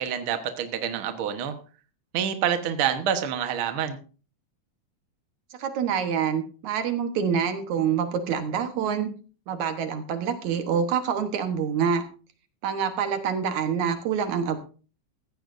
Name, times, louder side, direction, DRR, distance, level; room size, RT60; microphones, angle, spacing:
voice 1, 0.0-1.6 2.1-4.0, right 8 dB, 55° right, 7 dB, 1.8 m, -27 dB
voice 2, 5.6-9.1 9.5-12.0 12.6-14.6, right 7 dB, 75° right, 8 dB, 2.5 m, -26 dB
15.5 x 15.0 x 2.6 m, 0.37 s
omnidirectional pair, 3.5 m